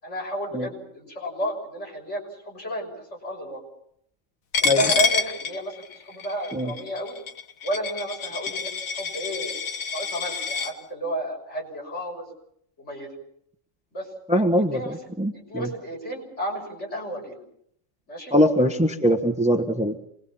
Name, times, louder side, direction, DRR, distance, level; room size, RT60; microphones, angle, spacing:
voice 1, 0.0-2.9 3.2-3.6 4.6-7.2 7.6-9.6 9.9-12.3 12.8-13.1 13.9-14.1 14.7-15.0 15.3-17.4 18.1-18.3, equal, 60° left, 0 dB, 6.6 m, -32 dB
Coin (dropping), 4.5-10.7, left 5 dB, 90° left, 1.7 m, -28 dB
voice 2, 14.3-15.7 18.3-20.0, equal, 5° right, 5 dB, 1.2 m, -22 dB
27.0 x 21.0 x 5.7 m, 0.70 s
omnidirectional pair, 1.4 m